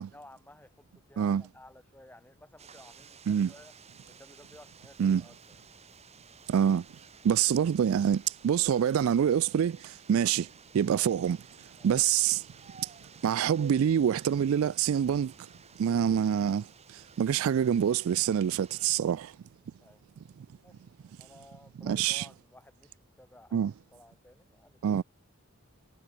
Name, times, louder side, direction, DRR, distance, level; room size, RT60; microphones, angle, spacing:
voice 1, 0.0-3.7 4.1-5.6 10.3-10.5 10.9-11.1 11.8-11.9 19.8-20.0 20.6-20.9 21.2-25.0, left 1 dB, 10° left, 3.1 m, -55 dB
sound 1, 2.6-18.9, right 6 dB, 30° right, 2.5 m, -55 dB
voice 2, 6.5-6.8 7.2-10.5 10.7-11.4 11.8-12.4 13.2-15.3 15.8-19.3 21.8-22.2 23.5-23.7 24.8-25.0, right 8 dB, 70° right, 0.3 m, -26 dB
head